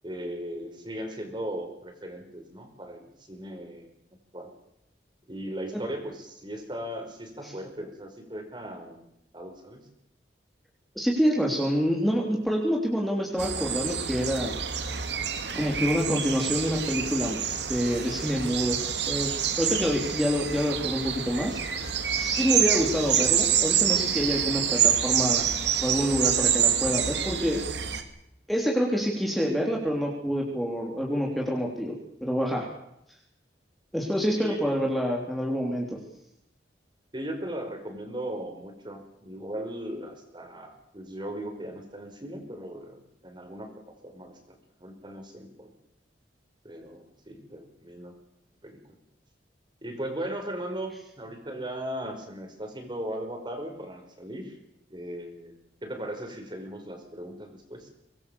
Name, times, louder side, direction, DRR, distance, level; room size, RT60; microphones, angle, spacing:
voice 1, 0.0-3.9 4.3-4.5 5.3-9.0 9.3-9.9 34.4-34.8 37.1-45.7 46.6-48.1 48.6-48.8 49.8-54.6 54.9-55.5 55.8-57.9, right 1 dB, 25° right, 4 dB, 5.1 m, -38 dB
voice 2, 10.9-14.5 15.5-17.4 17.7-18.8 19.1-21.6 22.1-25.5 25.8-27.6 28.5-31.9 32.2-32.6 33.9-36.0, equal, ahead, -1 dB, 3.3 m, -27 dB
sound 1, 13.4-28.0, right 8 dB, 80° right, 2.4 m, -27 dB
24.5 x 20.0 x 7.1 m, 0.79 s
head